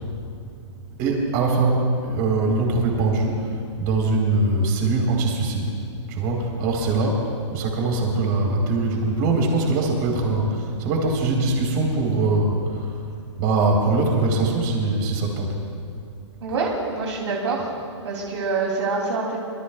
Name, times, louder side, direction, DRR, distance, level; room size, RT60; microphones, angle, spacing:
voice 1, 1.0-3.5 3.8-5.7 6.1-7.2 7.5-12.9 13.4-15.5 16.5-16.6, right 3 dB, 40° right, 0 dB, 4.1 m, -22 dB
voice 2, 16.4-17.7 18.0-19.4, right 4 dB, 65° right, -2 dB, 3.1 m, -25 dB
26.5 x 22.0 x 2.4 m, 2.4 s
hypercardioid pair, 140°, 16 cm